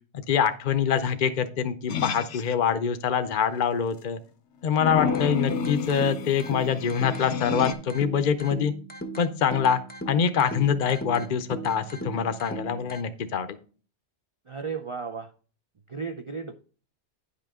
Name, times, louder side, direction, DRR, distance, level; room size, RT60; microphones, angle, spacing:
voice 1, 0.1-4.2 4.6-8.7 9.2-9.8 10.1-13.6, left 7 dB, 50° left, 9 dB, 0.7 m, -25 dB
sound 1, 1.9-2.5 4.8-7.7, left 6 dB, 80° left, 1.0 m, -30 dB
sound 2, 5.0-13.0, right 3 dB, 10° left, 0.6 m, -38 dB
voice 2, 14.5-15.3 15.9-16.6, right 5 dB, 50° right, 6 dB, 0.4 m, -34 dB
9.9 x 5.7 x 3.6 m, 0.39 s
omnidirectional pair, 1.2 m